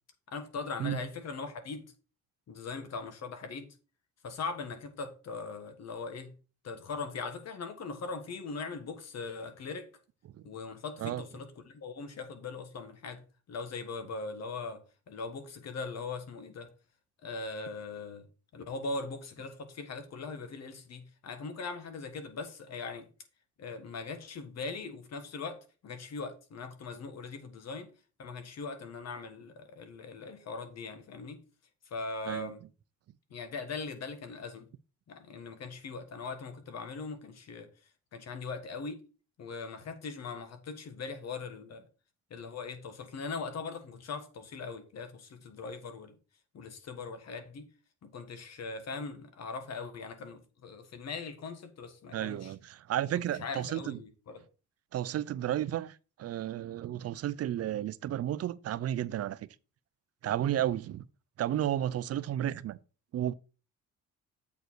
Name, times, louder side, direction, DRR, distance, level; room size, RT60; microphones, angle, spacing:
voice 1, 0.3-1.9 2.5-3.7 4.2-6.3 6.6-9.9 10.4-13.2 13.5-16.7 17.2-18.3 18.5-23.1 23.6-27.9 28.2-31.4 31.9-32.6 33.3-34.7 35.1-37.7 38.1-39.0 39.4-41.8 42.3-46.1 46.5-47.7 48.0-52.5 53.4-54.4, left 4 dB, 60° left, 1.5 m, -40 dB
voice 2, 52.1-54.0 54.9-59.5 60.2-61.1 61.4-62.8 63.1-63.3, right 11 dB, 55° right, 0.5 m, -32 dB
8.0 x 4.7 x 4.6 m
cardioid pair, 90°, 30 cm